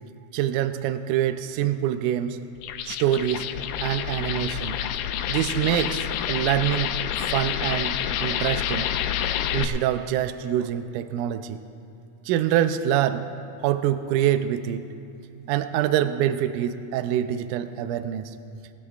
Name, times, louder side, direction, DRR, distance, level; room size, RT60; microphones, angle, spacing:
voice 1, 0.3-2.4 2.9-3.4 3.8-4.8 5.3-7.0 7.3-7.9 8.2-8.9 9.5-11.6 12.3-13.2 13.6-14.8 15.5-18.2, right 11 dB, 80° right, 10 dB, 2.0 m, -25 dB
sound 1, 2.6-9.6, left 10 dB, 80° left, 1.8 m, -28 dB
20.0 x 20.0 x 2.4 m, 2.6 s
omnidirectional pair, 3.8 m